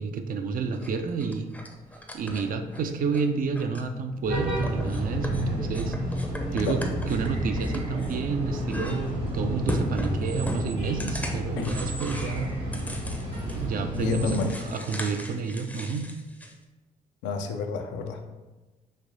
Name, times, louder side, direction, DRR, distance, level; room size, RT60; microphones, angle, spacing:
voice 1, 0.0-1.5 2.1-12.6 13.5-16.1, right 5 dB, 50° right, 6 dB, 0.4 m, -30 dB
sound 1, 0.7-3.2 3.6-4.3 4.6-8.3 8.7-9.3 9.7-13.7 13.9-16.5, left 1 dB, 10° left, 0.5 m, -37 dB
sound 2, 4.2-14.5, equal, 80° right, 1.3 m, -31 dB
voice 2, 13.9-14.6 17.2-18.2, left 5 dB, 75° left, 4 dB, 0.4 m, -29 dB
3.2 x 2.8 x 2.6 m, 1.2 s
hypercardioid pair, 45°, 18 cm